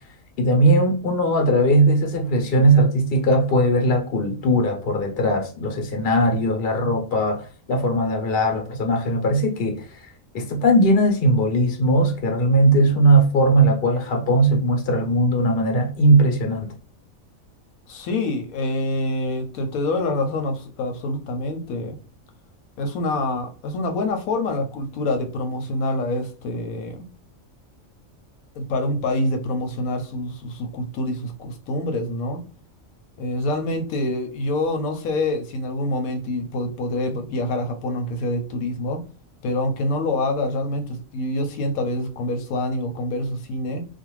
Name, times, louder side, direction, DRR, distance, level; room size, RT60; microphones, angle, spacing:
voice 1, 0.4-16.7, right 1 dB, 50° left, 0.9 m, -19 dB
voice 2, 17.9-22.0 22.8-27.1 28.5-32.4 33.2-39.0 39.4-43.8, left 2 dB, 80° left, 1.0 m, -26 dB
2.5 x 2.3 x 3.0 m
omnidirectional pair, 1.4 m